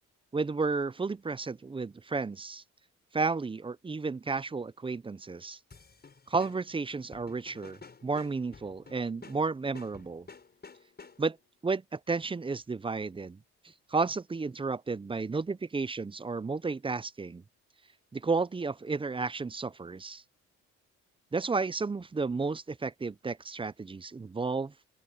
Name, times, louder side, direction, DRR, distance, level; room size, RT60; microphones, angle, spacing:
voice 1, 0.3-2.6 3.1-5.6 6.3-10.3 11.2-11.4 11.6-13.4 13.9-17.4 18.1-20.2 21.3-24.7, right 4 dB, 15° right, 0.6 m, -32 dB
sound 1, 5.7-11.5, left 5 dB, 35° left, 6.5 m, -52 dB
open air
cardioid pair, 90°, 30 cm